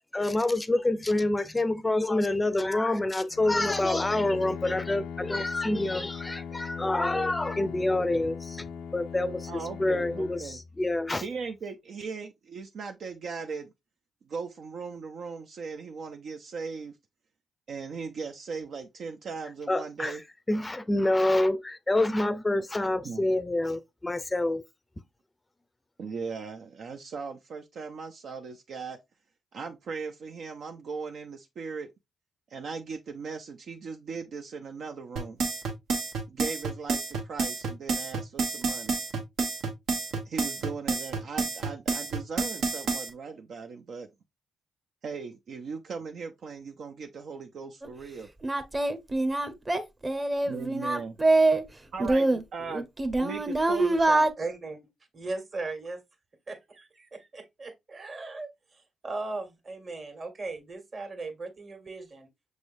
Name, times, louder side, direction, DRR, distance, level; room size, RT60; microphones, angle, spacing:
voice 1, 0.0-8.6 8.9-9.5 9.8-11.2 19.7-20.1 20.5-24.6, left 2 dB, 20° left, 0.5 m, -27 dB
Bowed string instrument, 3.3-11.3, left 6 dB, 90° left, 0.4 m, -39 dB
voice 2, 9.5-10.6 11.2-13.7 14.2-17.0 17.7-20.2 23.0-23.3 26.0-29.0 29.5-31.9 32.5-35.4 36.3-39.0 40.2-44.1 45.0-48.3 50.4-51.2 51.9-52.9 53.2-54.3, right 5 dB, 65° right, 0.5 m, -38 dB
sound 1, 35.2-43.1, right 4 dB, 85° right, 1.0 m, -29 dB
Singing, 47.8-47.9 48.4-51.6 52.0-54.3, right 2 dB, 25° right, 0.8 m, -24 dB
voice 3, 54.4-54.8 55.1-56.0 56.5-62.3, right 3 dB, 50° right, 1.7 m, -38 dB
6.2 x 3.3 x 2.6 m
supercardioid pair, 65°, 0 cm